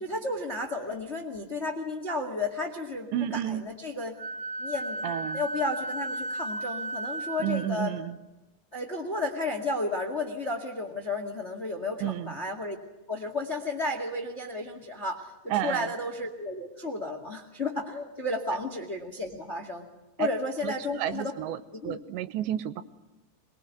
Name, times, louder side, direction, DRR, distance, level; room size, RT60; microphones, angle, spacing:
voice 1, 0.0-4.2 4.6-7.9 8.7-12.7 13.1-19.9 20.2-21.3 21.7-22.0, left 2 dB, 30° left, 6 dB, 1.1 m, -33 dB
voice 2, 3.1-3.6 5.0-5.4 7.4-8.2 12.0-12.4 15.5-15.9 20.2-20.3 20.6-22.8, right 11 dB, 90° right, 13 dB, 3.3 m, -31 dB
Wind instrument woodwind instrument, 4.2-7.7, right 1 dB, 70° right, 1.3 m, -34 dB
23.0 x 22.5 x 8.3 m, 1.1 s
omnidirectional pair, 5.0 m